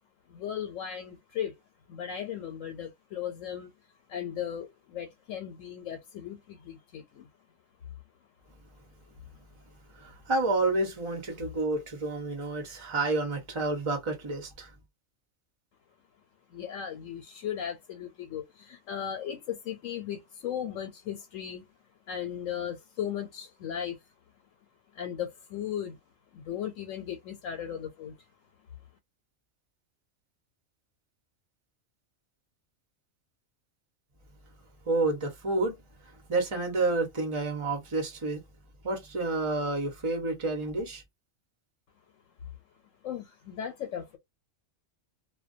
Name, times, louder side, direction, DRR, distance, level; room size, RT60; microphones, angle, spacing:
voice 1, 0.3-1.6 1.9-3.7 4.1-7.3 16.5-21.7 22.1-24.0 24.9-26.0 26.3-28.2 43.0-44.2, left 9 dB, 85° left, 1.0 m, -36 dB
voice 2, 10.0-14.7 34.9-35.8 36.0-38.4 38.8-41.0, right 2 dB, 30° right, 0.8 m, -29 dB
2.3 x 2.2 x 2.5 m
omnidirectional pair, 1.3 m